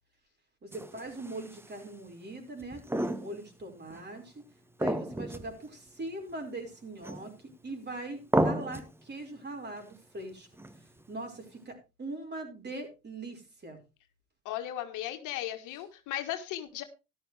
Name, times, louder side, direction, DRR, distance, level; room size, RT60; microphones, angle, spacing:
voice 1, 0.6-4.5 4.8-10.5 11.1-13.8, right 2 dB, 30° right, 4 dB, 5.2 m, -41 dB
sound 1, 0.7-1.8 2.6-3.6 3.9-4.0 4.8-5.6 5.9-6.0 7.0-7.5 8.3-8.9 10.5-11.0, right 1 dB, 5° right, 1.0 m, -32 dB
voice 2, 14.4-16.8, left 12 dB, 65° left, 7 dB, 1.6 m, -36 dB
13.5 x 11.5 x 3.3 m, 0.28 s
hypercardioid pair, 65°, 33 cm